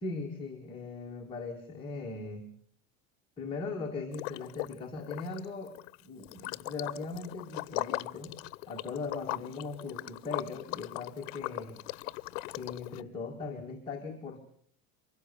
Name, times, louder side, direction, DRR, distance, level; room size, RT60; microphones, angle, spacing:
voice 1, 0.0-2.5 3.4-5.7 6.0-11.8 12.6-14.4, left 4 dB, 15° left, -3 dB, 2.0 m, -39 dB
Liquid, 4.1-4.8 5.0-13.0, left 20 dB, 70° left, 0.8 m, -39 dB
24.0 x 16.5 x 6.9 m, 0.64 s
cardioid pair, 175°, 40 cm